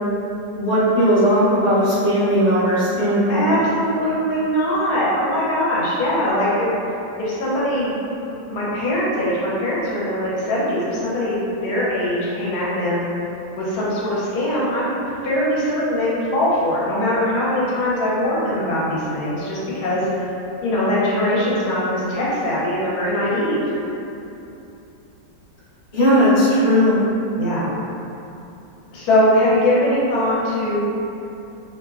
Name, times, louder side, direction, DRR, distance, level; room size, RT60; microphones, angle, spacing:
voice 1, 0.5-3.5 25.9-27.0, equal, 45° left, -12 dB, 0.9 m, -17 dB
voice 2, 3.3-6.7 7.2-8.0 8.5-13.0 13.5-14.9 15.2-20.1 20.6-23.7 27.4-27.7 28.9-30.8, left 1 dB, 65° left, -7 dB, 1.1 m, -21 dB
2.9 x 2.1 x 2.3 m, 2.9 s
omnidirectional pair, 1.9 m